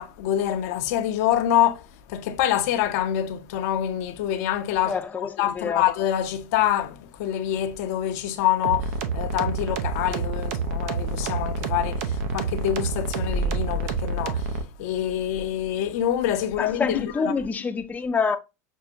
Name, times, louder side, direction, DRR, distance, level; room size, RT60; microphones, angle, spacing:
voice 1, 0.0-1.8 2.1-5.0 5.4-14.5 14.8-17.3, left 10 dB, 65° left, 0.6 m, -25 dB
voice 2, 4.9-5.8 16.6-18.4, left 5 dB, 20° left, 0.5 m, -27 dB
sound 1, 8.6-14.6, right 4 dB, 70° right, 0.7 m, -28 dB
6.2 x 2.1 x 2.6 m
hypercardioid pair, 100°, 9 cm